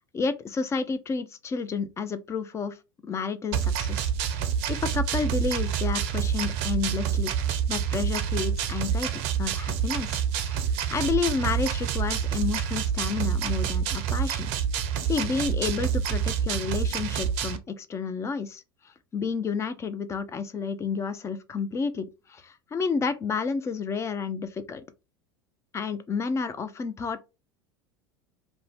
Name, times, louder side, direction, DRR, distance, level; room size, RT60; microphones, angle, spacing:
voice 1, 0.1-2.8 3.0-4.4 4.7-7.3 7.7-10.6 10.9-14.5 15.1-18.6 19.1-24.8 25.7-27.3, left 5 dB, 20° left, 0.4 m, -30 dB
sound 1, 3.5-17.6, right 8 dB, 50° right, 0.5 m, -27 dB
2.6 x 2.1 x 3.2 m
figure-of-eight pair, 75°, 13 cm